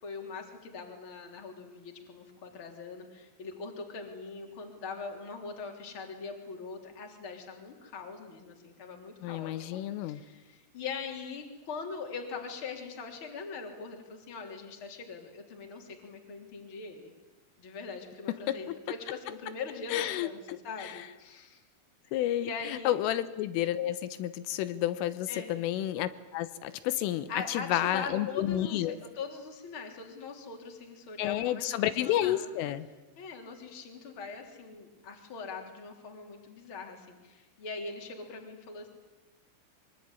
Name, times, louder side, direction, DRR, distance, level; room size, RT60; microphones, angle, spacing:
voice 1, 0.0-17.1 17.6-21.6 22.4-23.0 25.3-25.5 27.3-32.5 33.2-38.9, left 4 dB, 30° left, 2 dB, 3.5 m, -42 dB
voice 2, 9.2-10.2 18.3-18.8 19.9-21.0 22.1-29.0 31.2-32.9, left 13 dB, 80° left, 13 dB, 3.5 m, -31 dB
24.0 x 24.0 x 9.8 m, 1.1 s
omnidirectional pair, 5.9 m